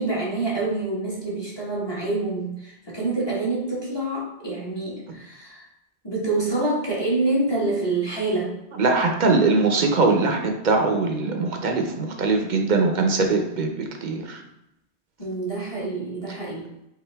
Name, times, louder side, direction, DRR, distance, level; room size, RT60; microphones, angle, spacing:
voice 1, 0.0-5.6 6.0-8.5 15.2-16.7, right 2 dB, 25° left, -5 dB, 1.2 m, -26 dB
voice 2, 8.8-14.4, right 3 dB, 50° right, 3 dB, 0.8 m, -21 dB
5.5 x 2.6 x 3.4 m, 0.85 s
omnidirectional pair, 1.1 m